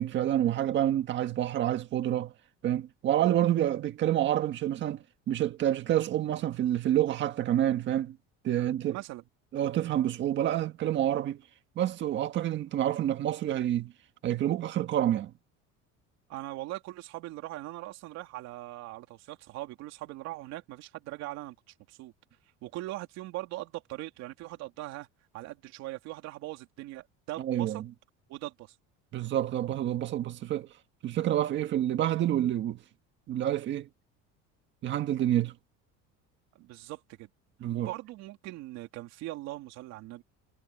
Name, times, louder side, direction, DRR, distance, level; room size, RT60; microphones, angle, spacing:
voice 1, 0.0-2.3 2.6-8.2 8.4-9.0 9.5-11.4 11.7-13.9 14.2-15.3 27.4-27.9 29.1-30.7 31.0-32.8 33.3-33.9 34.8-35.5 37.6-37.9, right 12 dB, 40° right, 1.6 m, -28 dB
voice 2, 8.8-9.2 16.3-21.6 21.9-22.1 22.6-25.1 25.3-27.8 28.3-28.8 36.6-37.3 37.7-40.2, right 17 dB, 60° right, 3.5 m, -40 dB
cardioid pair, 170°, 31 cm